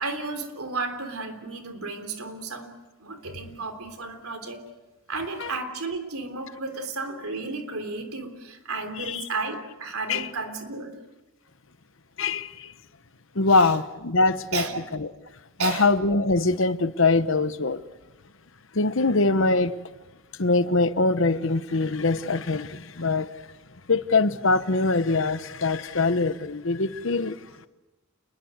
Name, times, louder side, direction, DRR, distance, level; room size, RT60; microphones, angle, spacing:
voice 1, 0.0-2.7 3.0-4.6 5.1-10.9 13.5-13.7 14.5-14.8 15.6-15.9, right 3 dB, 85° right, 3.4 m, -33 dB
voice 2, 12.2-12.7 13.3-14.6 15.0-15.1 15.6-17.8 18.7-19.7 20.4-23.3 23.9-27.4, left 3 dB, 60° left, 1.0 m, -23 dB
28.0 x 21.0 x 8.0 m
head